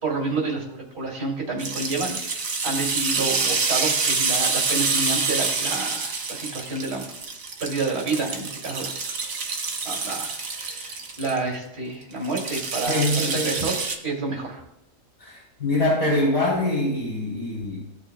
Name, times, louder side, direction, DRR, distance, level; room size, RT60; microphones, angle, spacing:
voice 1, 0.0-7.1 7.6-8.9 9.8-13.8 14.0-14.6, right 3 dB, 55° right, 0 dB, 2.6 m, -29 dB
sound 1, 1.6-11.4 12.2-14.0, right 4 dB, 85° right, 1.5 m, -27 dB
voice 2, 12.9-13.6 15.2-17.8, left 2 dB, 55° left, -4 dB, 2.8 m, -24 dB
14.5 x 6.3 x 2.2 m, 0.79 s
omnidirectional pair, 1.3 m